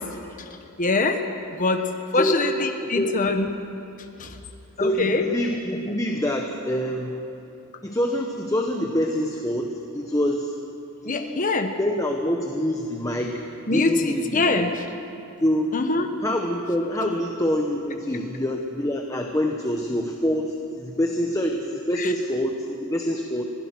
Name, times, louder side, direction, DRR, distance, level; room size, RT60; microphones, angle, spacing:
voice 1, 0.8-1.2 1.6-1.8 2.1-3.5 4.2-4.3 4.8-5.2 11.0-11.7 13.7-14.7 15.7-16.1 22.0-22.1, left 3 dB, 40° left, 5 dB, 1.2 m, -23 dB
voice 2, 2.1-2.5 2.9-3.2 4.8-7.2 7.8-10.6 11.0-11.4 11.8-13.4 13.7-14.7 15.4-15.8 16.2-23.4, equal, 15° left, 2 dB, 1.1 m, -26 dB
25.5 x 17.0 x 6.2 m, 2.8 s
head